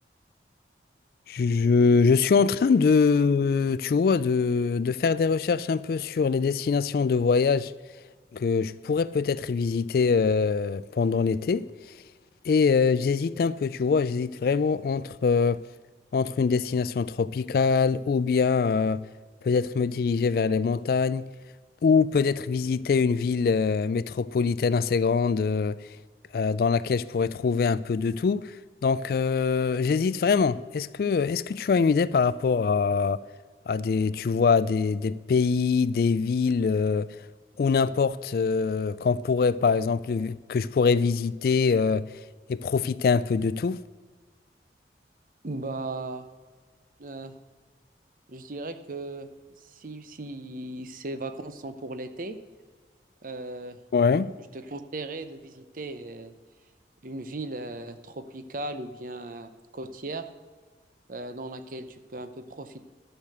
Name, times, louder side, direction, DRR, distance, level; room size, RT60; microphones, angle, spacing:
voice 1, 1.3-7.7 8.3-11.7 12.4-15.6 16.1-19.0 19.4-21.2 21.8-25.8 26.3-28.6 28.8-33.2 33.7-37.2 37.6-42.1 42.5-43.8 53.9-54.3, left 5 dB, 55° left, 0.3 m, -23 dB
voice 2, 45.4-46.3 47.0-47.3 48.3-49.3 49.6-52.4 53.2-53.8 54.5-56.3 57.0-60.3 61.1-62.8, right 2 dB, 50° right, 0.7 m, -37 dB
11.5 x 6.6 x 6.7 m
head